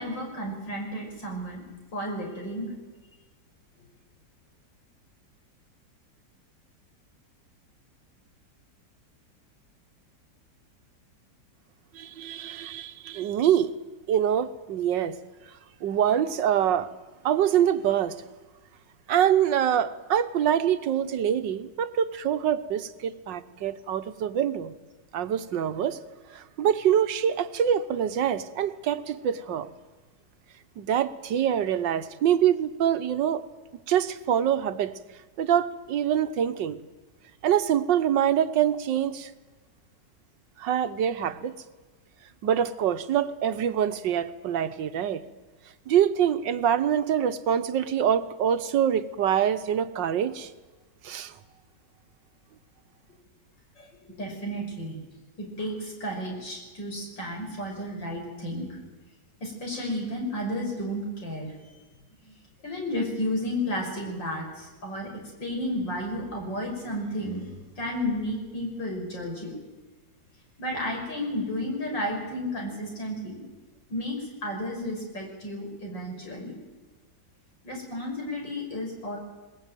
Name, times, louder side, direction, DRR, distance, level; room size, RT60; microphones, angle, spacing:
voice 1, 0.0-1.6 1.9-2.7 53.8-53.9 54.2-55.0 55.4-58.8 59.4-61.8 62.6-65.1 65.4-69.5 70.6-73.4 73.9-76.5 77.6-79.2, left 1 dB, 85° left, 1 dB, 6.5 m, -32 dB
voice 2, 11.9-13.7 14.1-15.2 15.8-16.9 17.2-18.2 19.1-24.7 25.1-26.0 26.3-29.7 30.8-33.4 33.9-35.0 35.4-36.8 37.4-39.3 40.6-41.5 42.4-45.2 45.9-50.5 51.0-51.3, right 9 dB, 85° right, 11 dB, 1.7 m, -25 dB
21.0 x 20.5 x 9.1 m, 1.2 s
omnidirectional pair, 1.9 m